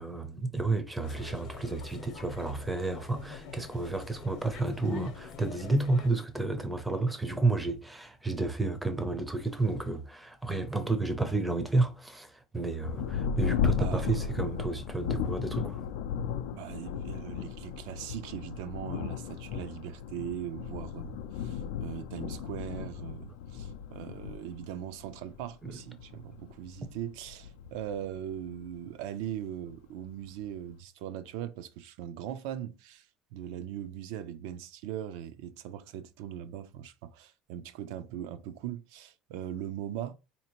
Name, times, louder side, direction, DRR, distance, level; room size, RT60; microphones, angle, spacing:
voice 1, 0.0-15.8 25.6-25.8, right 2 dB, 5° right, 0.5 m, -31 dB
sound 1, 1.0-6.1, left 6 dB, 50° left, 0.7 m, -46 dB
Thunder, 12.8-28.9 29.6-29.7 30.3-30.7, left 7 dB, 90° left, 0.4 m, -35 dB
voice 2, 13.8-14.3 16.5-40.1, right 10 dB, 70° right, 0.4 m, -40 dB
4.1 x 2.7 x 2.9 m
cardioid pair, 165°, 0 cm